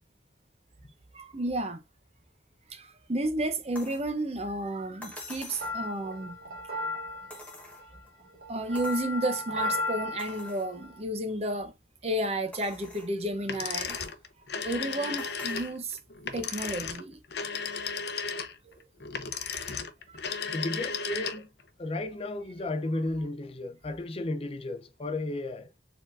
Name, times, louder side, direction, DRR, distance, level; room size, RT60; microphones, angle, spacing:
voice 1, 1.1-1.8 2.7-6.4 8.5-11.7 12.0-14.0 14.6-16.0 16.3-17.2 18.7-18.8, right 1 dB, 35° right, 0.7 m, -32 dB
sound 1, 3.7-4.1 5.0-5.8 7.3-8.1 8.7-9.1 9.6-9.7 10.2-10.7 11.3-11.4 12.5-13.1 13.9-14.2 15.2-15.8 17.0-17.1, left 2 dB, 10° left, 1.2 m, -46 dB
sound 2, 5.6-11.0, left 2 dB, 55° right, 1.1 m, -35 dB
sound 3, 13.4-21.6, left 5 dB, 65° left, 0.7 m, -35 dB
voice 2, 20.5-21.5 21.8-25.7, left 2 dB, 35° left, 0.5 m, -33 dB
4.5 x 3.7 x 2.5 m
head